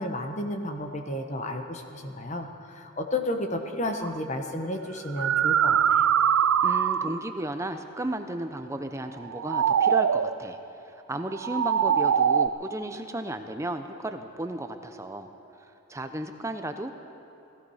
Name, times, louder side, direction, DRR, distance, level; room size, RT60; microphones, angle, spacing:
voice 1, 0.0-6.1, left 1 dB, 35° left, 5 dB, 1.1 m, -32 dB
sound 1, 4.0-4.2 5.0-7.3 9.2-10.4 11.3-12.5, right 8 dB, 70° right, 0.4 m, -23 dB
voice 2, 6.3-10.6 10.9-15.3 15.9-16.9, right 1 dB, 15° right, 7 dB, 0.6 m, -34 dB
18.0 x 15.5 x 4.9 m, 2.8 s
head